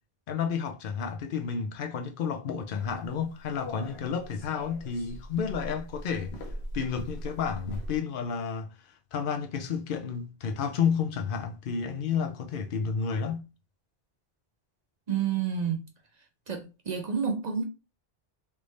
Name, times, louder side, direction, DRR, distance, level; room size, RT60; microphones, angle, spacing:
voice 1, 0.3-6.3 6.7-8.7 9.1-13.5, left 6 dB, 60° left, 0.7 m, -31 dB
sound 1, 2.7-8.0, equal, 90° left, 1.1 m, -40 dB
voice 2, 15.1-15.8 16.5-17.6, right 7 dB, 50° right, 0.7 m, -29 dB
3.4 x 2.6 x 3.1 m
omnidirectional pair, 1.0 m